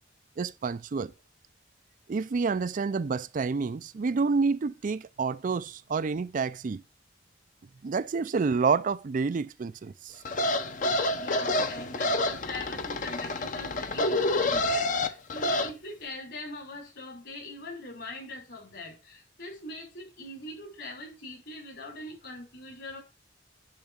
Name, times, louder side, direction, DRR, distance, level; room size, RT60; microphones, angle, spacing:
voice 1, 0.4-1.1 2.1-6.8 7.8-10.2, right 4 dB, 45° right, 0.4 m, -28 dB
sound 1, 10.2-15.7, left 2 dB, 45° left, 0.8 m, -28 dB
voice 2, 11.1-23.0, left 2 dB, 65° left, 5.3 m, -42 dB
10.5 x 3.9 x 7.0 m
head